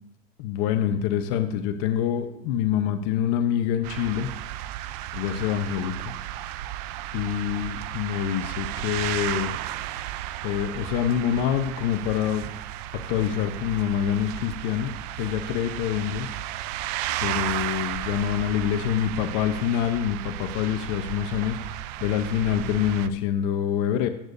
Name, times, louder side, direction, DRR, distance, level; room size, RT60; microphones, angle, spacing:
voice 1, 0.4-4.3 5.1-6.1 7.1-9.6 10.4-12.5 13.1-16.3 17.2-21.6 22.0-24.1, left 10 dB, 80° left, 8 dB, 0.8 m, -26 dB
sound 1, 3.8-23.1, right 14 dB, 85° right, 0.5 m, -34 dB
13.5 x 8.2 x 2.6 m, 0.86 s
supercardioid pair, 115°, 20 cm